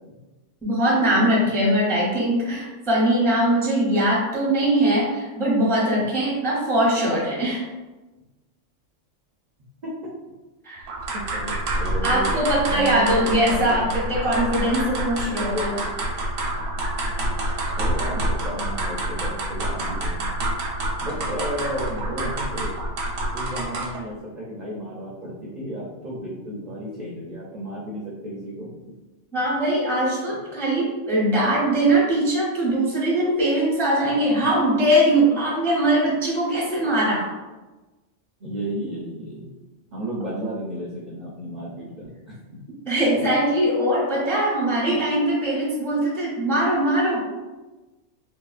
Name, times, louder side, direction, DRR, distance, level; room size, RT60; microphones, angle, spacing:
voice 1, 0.6-7.6 10.6-10.8 12.0-15.8 29.3-37.3 42.9-47.2, right 1 dB, 5° left, -5 dB, 0.4 m, -21 dB
sound 1, 10.9-24.1, right 1 dB, 80° right, 1.0 m, -27 dB
voice 2, 11.1-12.4 12.7-13.9 15.5-15.8 17.7-20.4 21.0-22.8 23.3-28.8 34.4-34.5 38.4-39.5 39.9-42.6 44.1-44.2 45.5-45.6, right 1 dB, 60° right, -4 dB, 0.5 m, -33 dB
2.7 x 2.7 x 2.4 m, 1.2 s
omnidirectional pair, 1.3 m